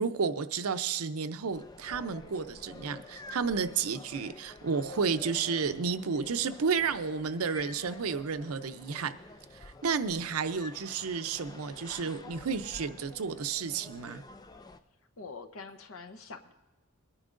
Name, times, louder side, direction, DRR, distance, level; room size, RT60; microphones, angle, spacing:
voice 1, 0.0-9.2 9.6-14.2, right 5 dB, 85° right, 10 dB, 0.6 m, -32 dB
sound 1, 1.5-14.8, left 3 dB, 20° left, 0.4 m, -49 dB
voice 2, 15.2-16.5, left 4 dB, 70° left, 7 dB, 0.9 m, -45 dB
22.0 x 10.0 x 2.5 m, 1.2 s
head